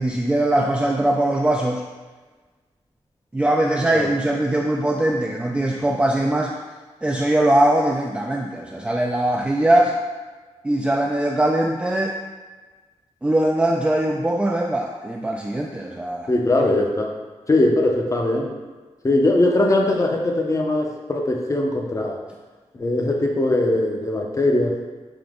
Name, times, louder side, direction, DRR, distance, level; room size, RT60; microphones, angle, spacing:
voice 1, 0.0-1.8 3.3-6.6 7.0-10.0 10.6-12.2 13.2-16.3, right 1 dB, 10° right, -1 dB, 0.3 m, -21 dB
voice 2, 16.3-17.2 17.5-18.5 19.0-22.2 22.8-24.7, left 2 dB, 30° left, 1 dB, 0.6 m, -20 dB
3.7 x 2.9 x 3.6 m, 1.3 s
cardioid pair, 75°, 11 cm